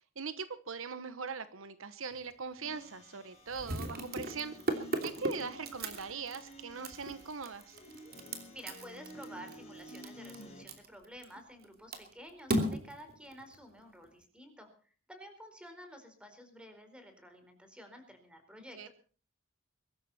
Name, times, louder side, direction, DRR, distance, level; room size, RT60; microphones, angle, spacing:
voice 1, 0.2-7.8 18.7-18.9, right 5 dB, 70° right, 13 dB, 1.1 m, -41 dB
sound 1, 2.1-2.2 2.6-2.7 3.5-11.7 11.9-14.1, right 1 dB, 45° right, 2.9 m, -37 dB
sound 2, 2.6-10.6, equal, 30° left, 4.9 m, -52 dB
voice 2, 8.5-14.7 15.1-18.9, equal, 5° right, 6 dB, 4.4 m, -51 dB
23.0 x 13.5 x 4.2 m, 0.41 s
head